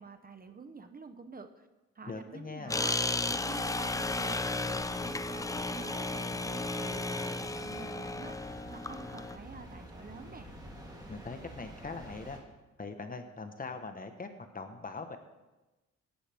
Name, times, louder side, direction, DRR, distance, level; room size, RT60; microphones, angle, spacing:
voice 1, 0.0-1.7 1.9-2.9 3.3-10.5, right 4 dB, 30° right, 8 dB, 1.0 m, -48 dB
voice 2, 2.1-2.8 11.1-12.4 12.8-15.2, left 4 dB, 30° left, 7 dB, 1.5 m, -41 dB
sound 1, 2.7-9.4, left 2 dB, 10° left, 0.5 m, -34 dB
sound 2, 3.6-12.4, equal, 15° right, 3.3 m, -49 dB
17.0 x 11.5 x 3.7 m, 1.1 s
cardioid pair, 90°, 30 cm